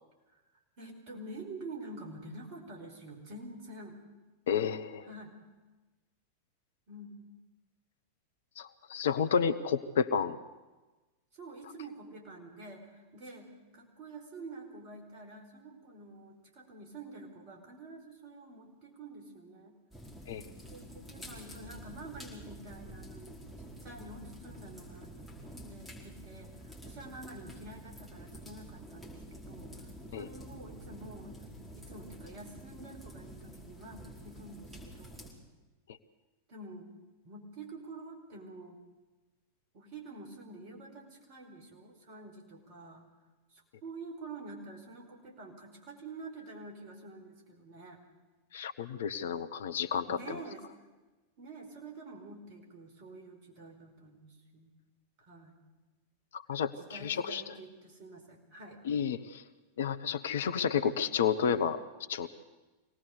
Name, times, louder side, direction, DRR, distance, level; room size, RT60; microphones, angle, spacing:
voice 1, 0.8-4.0 5.0-5.3 6.9-7.2 11.3-19.7 20.7-23.3 23.6-25.1 25.6-31.4 31.7-35.3 36.5-36.9 37.2-38.8 39.7-43.0 43.5-48.0 50.1-50.7 51.4-54.7 55.2-55.6 56.8-58.8, right 2 dB, 45° right, 3 dB, 4.7 m, -48 dB
voice 2, 4.5-5.1 8.6-10.4 20.3-20.4 30.1-30.2 48.5-50.2 56.3-57.5 58.8-59.4 59.8-61.8 62.1-62.3, left 7 dB, 60° left, 12 dB, 1.0 m, -31 dB
sound 1, 19.9-35.3, equal, ahead, 4.9 m, -48 dB
24.5 x 18.5 x 6.8 m, 1.2 s
figure-of-eight pair, 90°, 0 cm